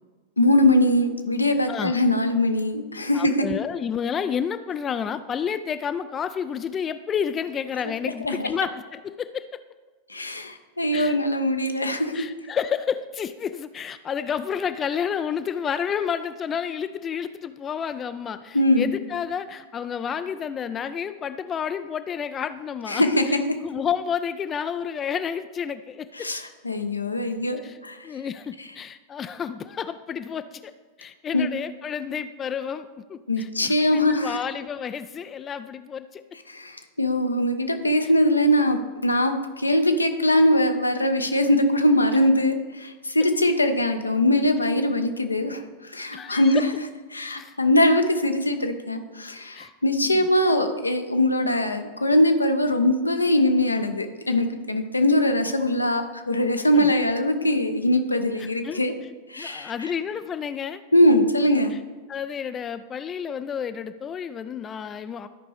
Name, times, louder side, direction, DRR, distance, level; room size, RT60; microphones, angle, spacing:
voice 1, 0.4-3.5 8.2-8.5 10.1-12.1 18.5-18.9 22.9-23.4 26.2-28.0 31.3-31.5 33.3-34.4 36.5-46.7 47.1-58.9 59.3-59.9 60.9-61.8, left 1 dB, 80° left, 7 dB, 0.6 m, -22 dB
voice 2, 3.1-9.6 10.9-11.2 12.1-23.2 23.6-26.3 27.6-27.8 28.0-30.7 31.0-36.2 46.1-46.6 47.3-47.5 49.5-49.7 50.0-50.2 56.7-57.1 57.4-57.6 58.4-58.8 59.4-60.8 61.7-61.8 62.1-65.3, left 7 dB, 25° left, 12 dB, 0.3 m, -30 dB
12.5 x 5.2 x 3.5 m, 1.3 s
figure-of-eight pair, 90°, 0 cm